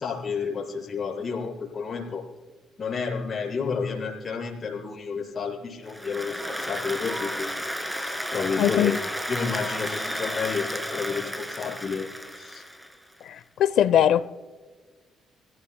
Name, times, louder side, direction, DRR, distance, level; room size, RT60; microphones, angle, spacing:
voice 1, 0.0-2.2 2.8-8.9 9.3-12.1 12.3-12.6, left 5 dB, 40° left, 5.0 m, -31 dB
Applause, 5.9-13.1, equal, 5° right, 2.1 m, -32 dB
voice 2, 8.6-9.0 13.3-14.3, left 10 dB, 75° left, 0.7 m, -21 dB
27.0 x 16.0 x 2.3 m
cardioid pair, 90°, 0 cm